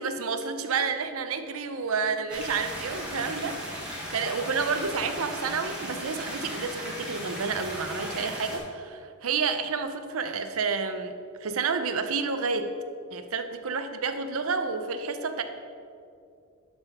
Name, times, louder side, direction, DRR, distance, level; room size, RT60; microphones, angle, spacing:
voice 1, 0.0-12.7 13.1-15.4, right 5 dB, 70° right, 8 dB, 0.6 m, -30 dB
sound 1, 2.3-8.6, equal, 5° right, 1.5 m, -37 dB
11.5 x 4.2 x 5.4 m, 2.4 s
head